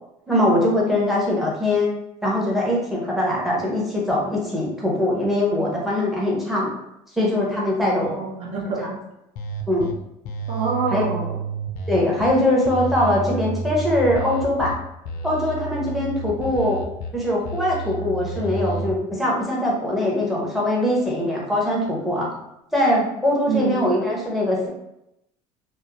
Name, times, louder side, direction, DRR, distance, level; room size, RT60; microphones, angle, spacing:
voice 1, 0.3-1.9 2.2-6.7 7.2-8.2 8.8-8.9 9.7-9.9 10.9-11.0 11.9-14.7 15.2-16.8 17.1-22.3 22.7-24.7, left 1 dB, ahead, -4 dB, 0.6 m, -22 dB
voice 2, 8.0-9.0 10.5-11.4 23.5-23.9, right 4 dB, 45° right, -1 dB, 0.5 m, -26 dB
sound 1, 9.4-9.9 10.2-12.3 12.6-14.7 15.0-17.1 17.4-18.9, right 3 dB, 90° left, 0.5 m, -30 dB
2.7 x 2.0 x 2.5 m, 0.84 s
cardioid pair, 155°, 15 cm